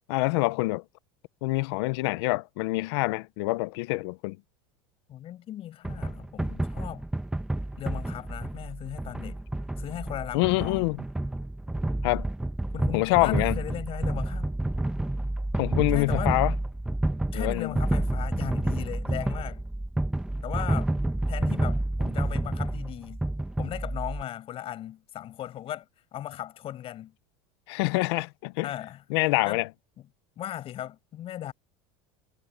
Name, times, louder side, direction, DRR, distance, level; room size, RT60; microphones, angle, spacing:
voice 1, 0.1-0.8 1.4-4.4 10.3-11.0 12.0-12.3 12.9-13.6 15.6-16.5 17.3-17.7 27.7-28.7 29.1-29.7, left 22 dB, 75° left, 1.0 m, -26 dB
voice 2, 5.1-7.1 7.8-9.4 9.8-11.0 12.7-14.5 15.9-16.3 17.3-19.6 20.4-20.9 21.3-23.2 23.6-27.1 28.6-29.0 29.4-29.6 30.4-31.5, left 12 dB, 40° left, 7.2 m, -37 dB
sound 1, 5.8-24.2, right 1 dB, 5° right, 1.6 m, -29 dB
supercardioid pair, 120°, 14 cm